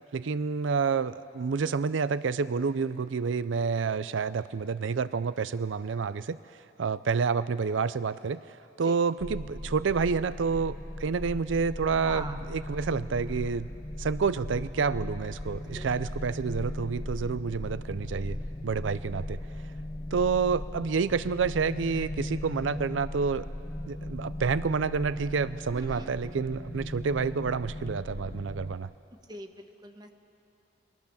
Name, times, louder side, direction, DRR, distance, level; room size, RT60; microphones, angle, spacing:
voice 1, 0.1-6.4 6.8-8.4 8.8-13.7 14.0-18.4 18.6-19.4 20.1-23.5 23.9-28.9, right 5 dB, 85° right, 15 dB, 0.5 m, -29 dB
sound 1, 9.2-28.8, left 1 dB, 25° left, 0.7 m, -38 dB
voice 2, 12.0-12.4 15.7-16.0 25.7-26.2 29.3-30.1, right 2 dB, 20° right, 5 dB, 1.3 m, -42 dB
29.5 x 22.0 x 7.1 m, 2.7 s
head